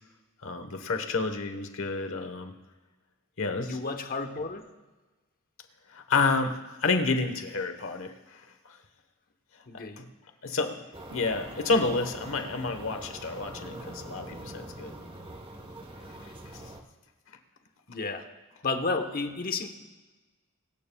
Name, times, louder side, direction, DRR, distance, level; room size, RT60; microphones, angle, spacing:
voice 1, 0.4-2.5 3.4-3.8 5.9-8.8 10.0-10.1 10.4-10.8 11.1-14.9, left 3 dB, 65° left, 7 dB, 1.2 m, -29 dB
voice 2, 3.5-4.6 9.7-10.0 17.9-18.3 18.6-19.7, left 3 dB, 40° left, 6 dB, 1.0 m, -32 dB
sound 1, 10.9-16.8, right 1 dB, 25° right, 1.2 m, -43 dB
22.5 x 14.0 x 2.3 m, 1.2 s
head